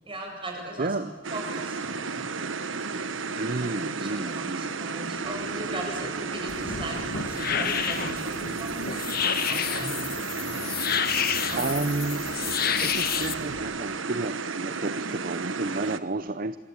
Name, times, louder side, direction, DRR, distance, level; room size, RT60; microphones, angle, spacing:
voice 1, 0.1-2.3 3.5-3.7 4.0-10.7 11.5-11.7, right 1 dB, 25° right, 1 dB, 7.8 m, -38 dB
voice 2, 0.8-1.1 3.4-4.7 11.6-12.2 12.6-16.6, right 2 dB, 45° right, 13 dB, 0.8 m, -32 dB
sound 1, 1.2-16.0, right 4 dB, 90° right, 1.4 m, -33 dB
sound 2, 5.1-13.7, equal, 85° left, 7.4 m, -48 dB
sound 3, 6.5-13.3, left 8 dB, 50° left, 1.6 m, -29 dB
27.5 x 23.0 x 8.8 m, 1.4 s
head